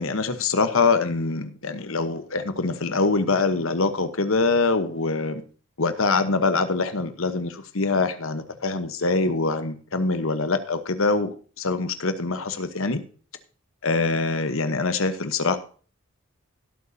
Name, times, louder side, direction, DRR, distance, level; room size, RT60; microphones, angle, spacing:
voice 1, 0.0-5.4 5.8-13.0 13.8-15.6, left 3 dB, 70° left, 10 dB, 1.1 m, -24 dB
17.0 x 8.2 x 2.8 m, 0.39 s
head